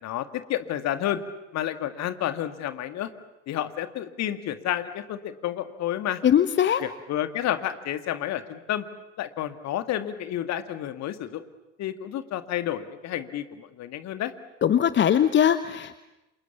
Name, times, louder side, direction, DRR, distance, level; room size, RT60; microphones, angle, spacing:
voice 1, 0.0-1.2 1.5-3.1 3.5-6.2 6.8-8.9 9.2-11.4 11.8-14.3, left 12 dB, 45° left, 10 dB, 2.0 m, -30 dB
voice 2, 6.2-6.8 14.6-16.0, left 9 dB, 30° left, 13 dB, 1.0 m, -20 dB
29.0 x 27.5 x 7.2 m, 0.97 s
figure-of-eight pair, 60°, 37 cm